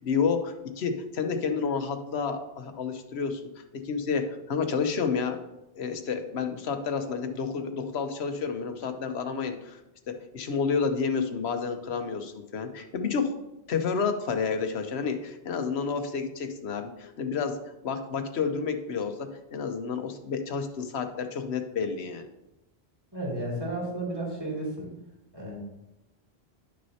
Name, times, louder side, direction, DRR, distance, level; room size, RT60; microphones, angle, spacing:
voice 1, 0.0-3.4 3.8-5.4 5.8-9.8 10.1-13.3 13.7-17.5 17.8-22.3, left 5 dB, 85° left, 7 dB, 1.1 m, -30 dB
voice 2, 23.1-24.9 25.3-25.6, right 1 dB, 20° right, -4 dB, 2.5 m, -33 dB
11.0 x 6.3 x 2.8 m, 0.93 s
omnidirectional pair, 1.1 m